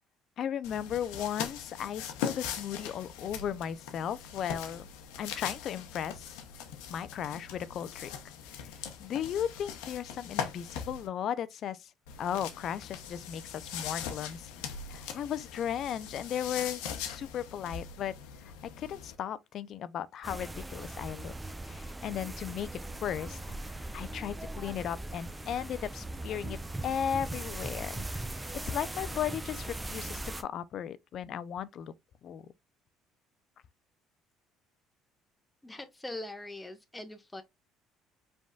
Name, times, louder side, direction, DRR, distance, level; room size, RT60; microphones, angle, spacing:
voice 1, 0.4-4.9 5.2-6.4 6.9-8.1 9.0-11.9 12.2-14.5 14.9-18.1 18.4-18.5 18.8-21.3 21.6-22.7 23.0-23.4 23.7-26.6 26.8-31.9 32.2-32.4, left 9 dB, 60° left, 0.5 m, -36 dB
sound 1, 0.6-11.1 12.1-19.1, left 8 dB, 90° left, 0.9 m, -41 dB
sound 2, 20.2-30.4, right 2 dB, 15° right, 0.7 m, -39 dB
voice 2, 35.6-37.4, left 1 dB, 10° left, 1.2 m, -42 dB
5.1 x 3.5 x 2.4 m
supercardioid pair, 90°, 0 cm